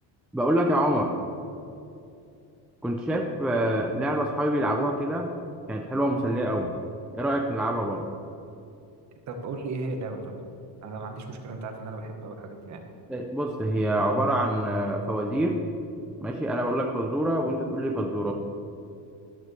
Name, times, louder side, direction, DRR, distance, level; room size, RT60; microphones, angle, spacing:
voice 1, 0.3-1.1 2.8-5.3 5.7-6.7 7.1-8.1 13.1-15.6 16.2-18.3, right 1 dB, 5° right, 0 dB, 0.4 m, -26 dB
voice 2, 9.3-10.3 10.8-12.8, right 3 dB, 40° right, 4 dB, 1.3 m, -35 dB
13.5 x 12.0 x 3.2 m, 2.6 s
cardioid pair, 175°, 42 cm